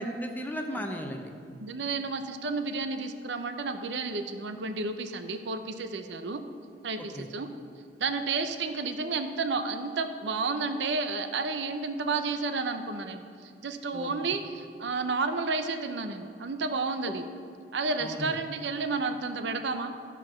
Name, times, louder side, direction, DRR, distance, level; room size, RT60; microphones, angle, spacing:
voice 1, 0.0-1.3 7.0-7.3 13.9-14.1 18.0-18.3, equal, 10° left, 3 dB, 0.7 m, -35 dB
voice 2, 1.6-6.4 6.8-7.5 8.0-17.3 17.7-20.0, right 3 dB, 80° right, 8 dB, 0.6 m, -31 dB
12.5 x 4.6 x 5.8 m, 2.2 s
head